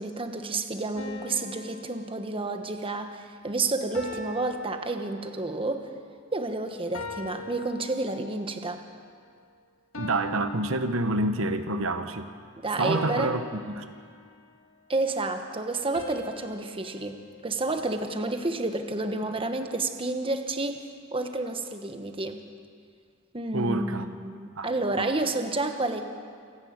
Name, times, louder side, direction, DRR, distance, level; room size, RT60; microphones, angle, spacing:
voice 1, 0.0-5.9 6.3-8.8 12.6-13.3 14.9-20.8 21.1-22.4 23.3-26.1, right 2 dB, 25° right, 6 dB, 1.2 m, -30 dB
sound 1, 1.0-2.9 3.9-5.6 6.9-8.5 9.9-11.6 12.9-14.6 15.9-18.3, left 2 dB, 70° left, 2.3 m, -42 dB
voice 2, 10.0-12.3 12.8-13.9 23.5-24.0 24.5-25.1, right 2 dB, 75° right, 8 dB, 1.1 m, -28 dB
27.5 x 11.0 x 8.7 m, 2.1 s
head